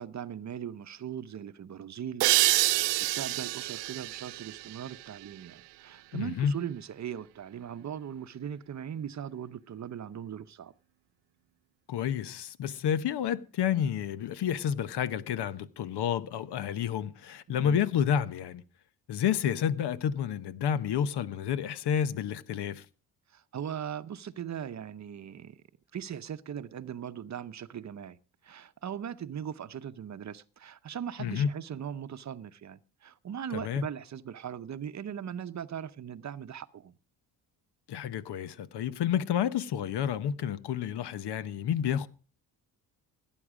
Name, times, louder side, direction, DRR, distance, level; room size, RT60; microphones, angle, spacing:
voice 1, 0.0-2.3 2.7-10.7 17.6-17.8 23.3-25.6 25.9-28.2 28.4-36.9, right 9 dB, 40° right, 0.8 m, -39 dB
sound 1, 2.2-5.6, right 18 dB, 85° right, 0.6 m, -28 dB
voice 2, 6.1-6.6 11.9-18.6 19.1-22.8 31.2-31.5 33.5-33.8 37.9-42.1, left 9 dB, 70° left, 1.1 m, -30 dB
17.5 x 9.2 x 5.0 m
cardioid pair, 110°, 42 cm